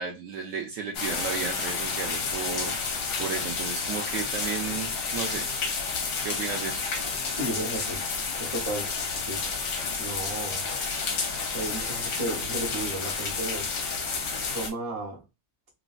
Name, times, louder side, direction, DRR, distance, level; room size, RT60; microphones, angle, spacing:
voice 1, 0.0-2.7 3.2-5.5 6.2-6.9, right 6 dB, 70° right, 0.9 m, -33 dB
sound 1, 0.9-14.7, left 4 dB, 70° left, 1.1 m, -30 dB
voice 2, 7.3-8.0 8.4-9.4 10.0-10.8 11.5-13.7 14.5-15.2, right 1 dB, 30° right, 0.8 m, -34 dB
3.0 x 2.6 x 2.3 m
omnidirectional pair, 1.6 m